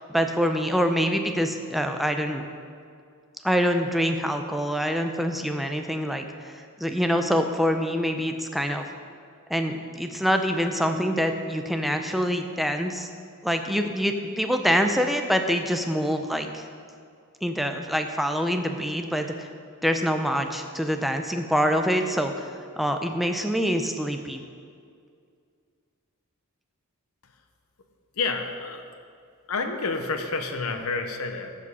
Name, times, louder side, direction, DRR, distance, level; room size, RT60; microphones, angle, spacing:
voice 1, 0.0-2.5 3.4-8.8 9.5-13.1 13.4-16.7 17.4-19.5 19.8-24.4, equal, ahead, 5 dB, 0.5 m, -25 dB
voice 2, 28.2-28.9 29.5-31.5, left 4 dB, 70° left, 5 dB, 0.8 m, -29 dB
14.5 x 5.1 x 5.5 m, 2.2 s
head